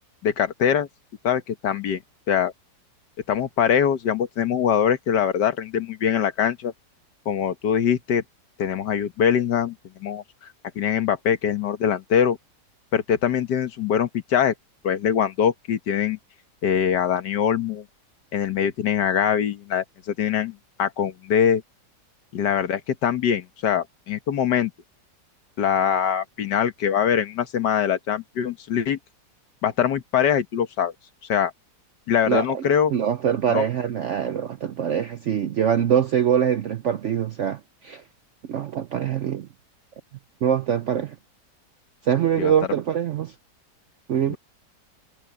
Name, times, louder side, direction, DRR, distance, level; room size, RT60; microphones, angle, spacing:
voice 1, 0.2-0.9 1.2-2.0 2.3-2.5 3.3-6.7 7.3-8.2 8.6-9.8 10.0-10.5 10.8-12.4 12.9-14.5 14.8-16.2 16.6-17.8 18.3-21.6 22.3-24.7 25.6-29.0 29.6-30.9 31.3-31.5 32.1-32.9 33.5-33.6 42.4-42.5 44.3-44.4, left 8 dB, 70° left, 1.8 m, -23 dB
voice 2, 32.3-32.6 32.9-38.0 38.5-39.5 40.4-41.2 42.0-43.3 44.1-44.4, right 8 dB, 65° right, 0.7 m, -23 dB
omnidirectional pair, 1.9 m